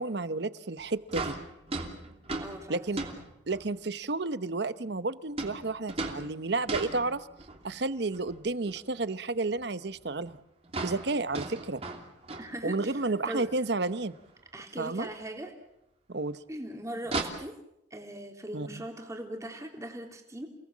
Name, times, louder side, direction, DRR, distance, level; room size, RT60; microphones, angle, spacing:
voice 1, 0.0-1.4 2.7-3.0 3.5-7.3 7.6-10.4 10.8-11.8 12.6-14.1 14.8-15.1 16.1-16.4 18.5-18.7, right 3 dB, 60° right, 14 dB, 0.9 m, -31 dB
sound 1, 0.8-0.9 1.1-3.8 5.4-7.7 8.1-8.8 9.1-9.2 9.6-9.7 10.0-10.1 10.2-10.4 10.6-13.1 13.4-13.5 13.8-14.0 15.1-15.2 17.0-17.2, right 3 dB, 35° right, 3.0 m, -37 dB
voice 2, 2.4-3.1 12.4-13.5 14.5-15.5 16.5-17.5 17.9-20.5, right 1 dB, 15° right, 2 dB, 3.3 m, -40 dB
29.5 x 18.5 x 7.4 m, 0.84 s
head